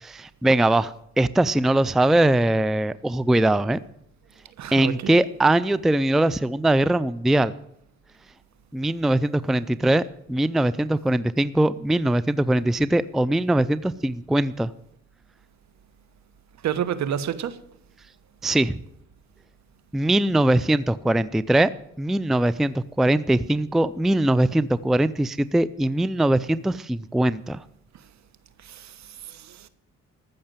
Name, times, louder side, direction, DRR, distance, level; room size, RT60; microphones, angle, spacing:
voice 1, 0.0-3.8 4.7-7.5 8.7-10.0 10.3-14.7 18.4-18.8 19.9-21.7 22.0-27.6, right 1 dB, ahead, 0.4 m, -21 dB
voice 2, 4.6-5.1 16.6-17.6 28.6-28.9 29.3-29.7, right 9 dB, 65° right, 1.2 m, -29 dB
14.5 x 6.6 x 8.9 m
cardioid pair, 90°, 30 cm